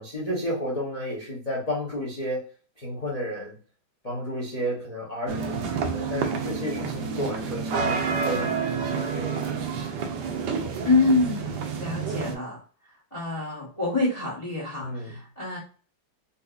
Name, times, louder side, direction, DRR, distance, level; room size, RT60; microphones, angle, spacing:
voice 1, 0.0-2.4 2.8-3.6 4.0-9.7 14.8-15.2, equal, 90° left, -4 dB, 0.3 m, -32 dB
sound 1, 5.3-12.3, right 5 dB, 70° right, 1.1 m, -29 dB
voice 2, 10.8-12.6 13.1-15.6, left 3 dB, 25° left, -6 dB, 0.6 m, -26 dB
4.0 x 2.6 x 2.4 m, 0.40 s
omnidirectional pair, 2.2 m